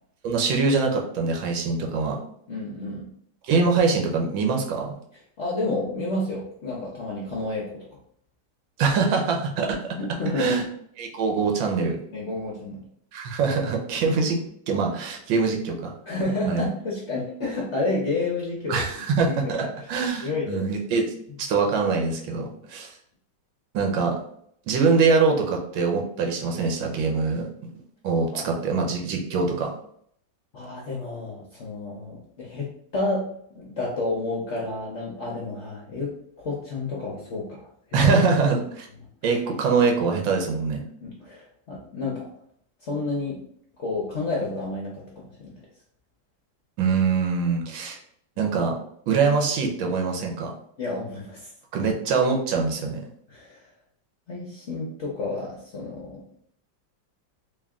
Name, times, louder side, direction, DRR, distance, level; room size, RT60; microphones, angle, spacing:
voice 1, 0.2-2.2 3.4-4.9 8.8-9.9 10.4-10.6 11.0-12.0 13.1-14.4 14.7-15.9 16.5-16.7 18.7-19.6 19.9-22.9 23.7-24.2 24.7-27.5 28.0-29.7 37.9-38.9 39.2-40.8 46.8-48.0 48.4-48.7 49.1-50.5 51.7-53.0, right 4 dB, 90° right, 2 dB, 1.5 m, -23 dB
voice 2, 2.5-3.1 5.4-7.8 10.0-10.6 12.1-12.8 16.1-18.8 19.2-19.6 20.2-20.7 22.4-22.6 28.3-28.6 30.5-32.7 32.9-33.2 33.5-36.1 36.4-37.7 38.0-38.1 39.3-39.4 41.0-42.3 42.8-43.4 43.8-45.5 50.8-51.5 53.3-53.7 54.3-56.2, left 2 dB, 60° left, -3 dB, 0.7 m, -30 dB
3.5 x 2.5 x 3.6 m, 0.67 s
omnidirectional pair, 2.1 m